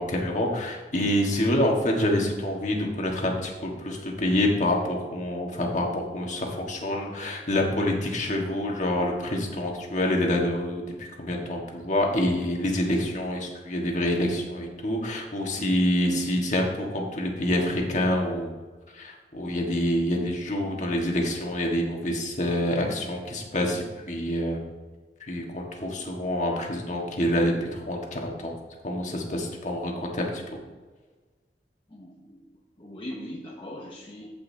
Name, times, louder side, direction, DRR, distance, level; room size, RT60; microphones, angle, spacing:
voice 1, 0.0-10.9 11.2-18.5 18.9-24.6 25.3-28.5 28.8-30.6, left 1 dB, 45° left, 0 dB, 1.6 m, -27 dB
voice 2, 31.9-32.4 32.8-34.3, left 1 dB, 30° left, -3 dB, 0.9 m, -40 dB
15.0 x 5.5 x 2.8 m, 1.3 s
head